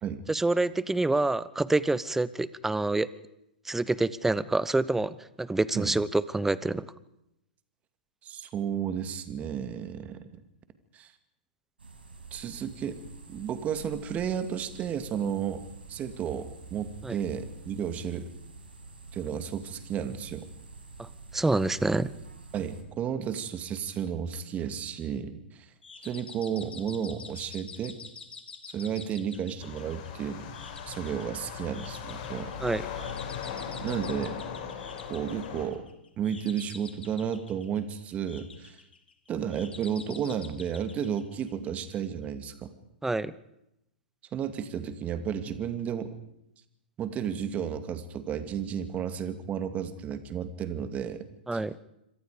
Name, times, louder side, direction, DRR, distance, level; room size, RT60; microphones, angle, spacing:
voice 1, 0.3-3.1 3.6-6.9 17.0-17.2 21.0-21.1 21.3-22.1 32.6-32.8 43.0-43.3 51.5-51.8, right 2 dB, 5° right, 18 dB, 1.0 m, -27 dB
voice 2, 8.2-10.3 10.9-11.1 12.3-13.0 13.3-15.6 15.9-18.3 19.1-20.5 22.5-25.7 26.0-28.0 28.7-30.5 30.9-32.5 33.8-34.4 35.1-35.8 36.2-38.8 39.3-42.7 44.3-46.1 47.0-51.2 51.5-51.6, right 8 dB, 25° right, 9 dB, 2.5 m, -33 dB
sound 1, 11.8-22.8, right 3 dB, 85° right, 6.1 m, -47 dB
sound 2, 25.8-41.9, left 4 dB, 80° left, 3.0 m, -48 dB
sound 3, 29.6-35.7, left 7 dB, 50° left, 7.3 m, -38 dB
27.5 x 25.0 x 5.2 m, 0.82 s
hypercardioid pair, 110°, 5 cm